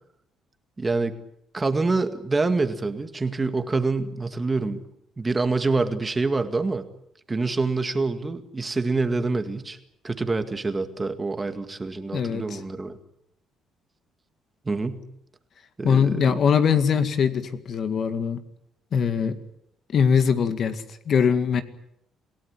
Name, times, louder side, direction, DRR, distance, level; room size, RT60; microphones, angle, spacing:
voice 1, 0.8-1.2 1.5-4.8 5.2-6.9 7.3-9.8 10.0-12.9 14.7-15.0 15.8-16.3, right 3 dB, 20° right, 8 dB, 2.0 m, -26 dB
voice 2, 12.1-12.6 15.8-18.4 18.9-19.4 19.9-21.6, left 7 dB, 50° left, 10 dB, 2.0 m, -22 dB
27.5 x 17.0 x 9.7 m, 0.79 s
cardioid pair, 120°, 0 cm